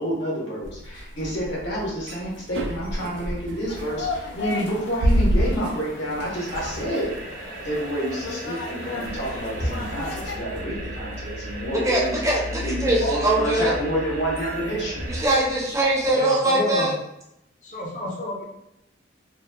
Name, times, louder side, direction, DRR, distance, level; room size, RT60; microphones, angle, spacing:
voice 1, 0.0-7.1 7.6-12.1 12.6-15.0, equal, 65° left, -5 dB, 0.9 m, -29 dB
sound 1, 0.6-16.1, equal, 65° right, 0.3 m, -31 dB
sound 2, 3.7-10.4, left 3 dB, 90° left, 0.4 m, -36 dB
sound 3, 6.3-15.3, right 1 dB, 50° right, 0.7 m, -36 dB
voice 2, 11.8-13.7 15.1-16.9, right 1 dB, 15° right, -4 dB, 0.5 m, -22 dB
voice 3, 16.1-16.9 17.6-18.4, equal, 45° left, -2 dB, 0.6 m, -29 dB
2.9 x 2.1 x 2.2 m, 0.83 s
head